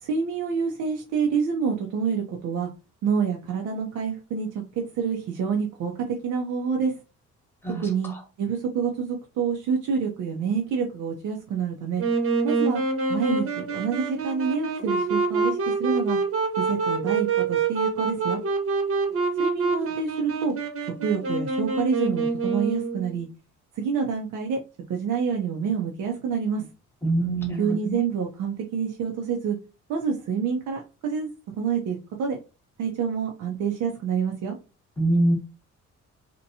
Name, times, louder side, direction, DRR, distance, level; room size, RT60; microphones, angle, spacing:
voice 1, 0.0-2.7 3.0-4.6 4.9-7.0 7.8-8.1 8.4-12.0 12.4-12.8 13.1-16.2 16.6-18.4 19.4-20.5 21.0-23.3 23.7-24.6 24.9-26.7 27.6-29.6 29.9-31.3 31.6-32.4 32.8-34.5, right 6 dB, 80° right, 1 dB, 0.6 m, -27 dB
Wind instrument woodwind instrument, 12.0-23.1, right 4 dB, 50° right, 0.9 m, -26 dB
voice 2, 27.0-28.0 35.0-35.3, right 1 dB, 10° left, 2 dB, 1.0 m, -24 dB
2.8 x 2.2 x 2.6 m, 0.30 s
cardioid pair, 90°, 30 cm